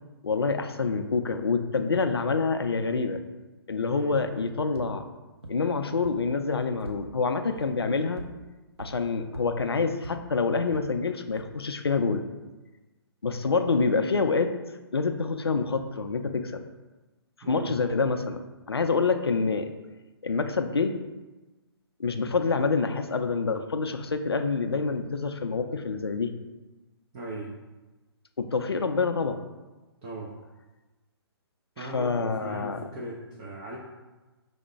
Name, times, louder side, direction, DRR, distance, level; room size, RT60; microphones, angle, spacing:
voice 1, 0.2-3.2 3.7-5.0 5.5-8.2 8.8-12.2 13.2-14.5 14.9-16.6 17.5-18.4 18.7-19.7 20.2-21.0 22.0-26.3 28.4-29.4 31.8-32.8, left 4 dB, 70° left, 7 dB, 0.4 m, -27 dB
voice 2, 3.9-4.2 17.4-17.7 22.4-22.5 27.1-27.5 30.0-30.3 31.8-33.8, right 2 dB, 20° right, -3 dB, 0.4 m, -38 dB
sound 1, 4.1-4.2 4.8-4.9 5.4-5.5 6.0-6.1 6.5-7.0 7.6-7.7 8.2-8.3 8.8-8.9 9.3-9.4 10.0-10.1 10.7-10.8 11.4-11.5, right 3 dB, 75° right, 0.6 m, -40 dB
4.7 x 2.1 x 4.3 m, 1.2 s
figure-of-eight pair, 130°, 14 cm